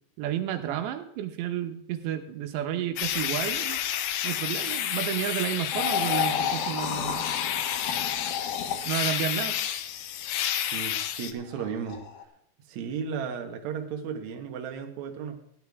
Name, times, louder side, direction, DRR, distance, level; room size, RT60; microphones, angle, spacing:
voice 1, 0.2-3.8 4.2-7.2 8.8-9.6, right 11 dB, 85° right, 7 dB, 3.2 m, -31 dB
sound 1, 3.0-11.3, left 11 dB, 80° left, 2.7 m, -30 dB
sound 2, 5.7-8.9 11.5-12.2, left 8 dB, 65° left, 2.3 m, -31 dB
voice 2, 10.7-12.0 12.7-15.4, right 6 dB, 65° right, 4 dB, 2.0 m, -34 dB
17.0 x 11.0 x 3.6 m, 0.70 s
omnidirectional pair, 4.9 m